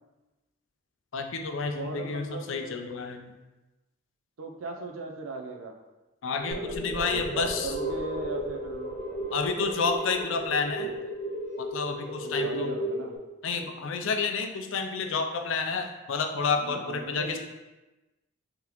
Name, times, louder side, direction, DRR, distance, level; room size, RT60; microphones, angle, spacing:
voice 1, 1.1-3.4 6.2-7.7 9.3-10.9 11.6-12.8 13.4-17.4, left 5 dB, 70° left, 5 dB, 0.4 m, -30 dB
voice 2, 1.7-2.8 4.4-5.7 6.5-8.9 10.8-10.9 12.2-13.2 16.4-17.4, right 3 dB, 80° right, 4 dB, 0.5 m, -38 dB
sound 1, 6.4-13.2, equal, 20° left, 1.4 m, -34 dB
sound 2, 6.5-11.4, right 2 dB, 30° right, 1.1 m, -42 dB
3.7 x 3.6 x 2.9 m, 1.1 s
head